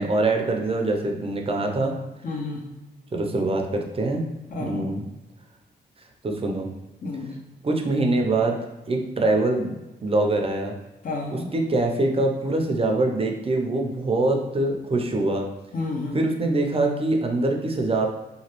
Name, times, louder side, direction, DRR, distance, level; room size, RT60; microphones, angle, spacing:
voice 1, 0.0-1.9 3.1-4.2 4.6-5.0 6.2-6.7 7.6-8.6 8.9-9.7 10.0-10.7 11.5-15.4 15.8-15.9 16.1-18.1, right 2 dB, 35° right, 2 dB, 0.6 m, -24 dB
voice 2, 2.2-2.6 4.5-4.9 7.0-7.3 11.0-11.5 15.7-16.2, left 3 dB, 50° left, 0 dB, 0.7 m, -30 dB
3.0 x 2.3 x 3.0 m, 1.0 s
cardioid pair, 65°, 18 cm